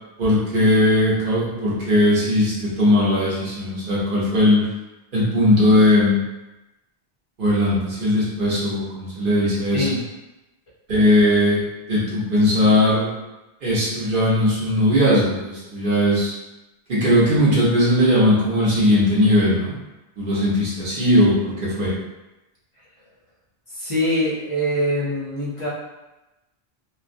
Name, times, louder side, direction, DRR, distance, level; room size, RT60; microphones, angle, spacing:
voice 1, 0.2-4.7 5.1-6.2 7.4-9.9 10.9-11.6 11.9-13.1 13.6-16.3 16.9-19.7 20.2-21.9, left 1 dB, 60° right, -7 dB, 0.8 m, -18 dB
voice 2, 23.7-25.7, equal, 40° left, -6 dB, 0.5 m, -23 dB
2.3 x 2.1 x 2.5 m, 1.0 s
omnidirectional pair, 1.1 m